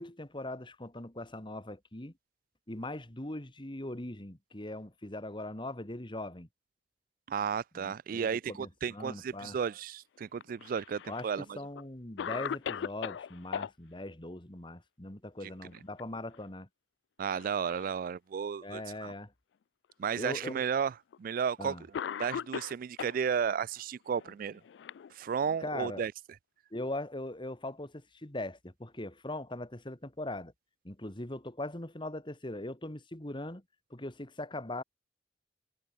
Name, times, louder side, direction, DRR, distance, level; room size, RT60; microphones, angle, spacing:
voice 1, 0.0-2.1 2.7-6.5 7.7-9.6 11.1-16.7 18.6-19.3 20.2-20.6 21.6-21.8 25.6-26.1 26.7-30.5 30.8-33.6 33.9-34.8, left 1 dB, 30° left, 2.2 m, -40 dB
voice 2, 7.3-11.6 17.2-19.1 20.0-21.8 22.2-24.6 25.1-26.1, right 7 dB, 50° right, 0.3 m, -33 dB
Cough, 10.4-11.2 11.8-11.9 12.2-13.7 15.6-16.0 16.3-16.5 17.3-18.0 18.8-18.9 19.9-20.0 21.1-21.3 21.9-23.2 24.2-25.6, left 8 dB, 85° left, 0.3 m, -39 dB
head